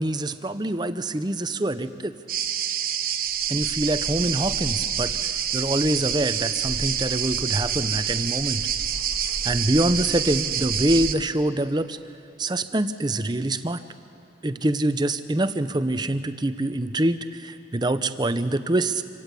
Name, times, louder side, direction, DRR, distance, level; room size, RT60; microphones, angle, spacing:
voice 1, 0.0-2.1 3.5-8.6 9.4-12.0 12.4-13.8 14.4-19.0, right 1 dB, 25° right, 11 dB, 0.6 m, -25 dB
sound 1, 2.3-11.1, right 8 dB, 50° right, 0.9 m, -27 dB
26.0 x 17.0 x 8.3 m, 2.6 s
head